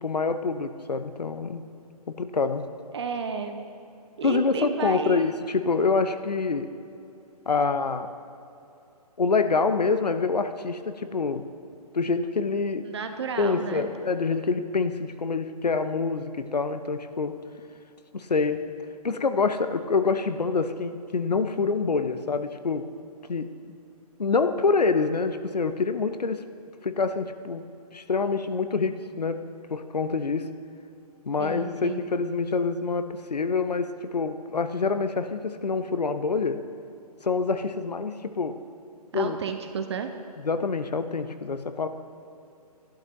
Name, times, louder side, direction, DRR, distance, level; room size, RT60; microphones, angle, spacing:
voice 1, 0.0-1.6 2.1-2.7 4.2-6.7 7.5-8.1 9.2-11.5 11.9-12.9 13.4-17.4 18.1-18.7 19.0-22.9 23.3-23.6 24.2-26.4 26.8-30.5 31.2-36.7 37.2-38.6 39.1-39.4 40.4-41.9, left 4 dB, 80° left, 10 dB, 0.7 m, -26 dB
voice 2, 2.9-3.6 4.2-5.3 12.8-13.9 31.4-32.0 39.1-40.1, right 6 dB, 40° right, 6 dB, 0.7 m, -32 dB
14.0 x 11.5 x 3.0 m, 2.7 s
figure-of-eight pair, 140°, 21 cm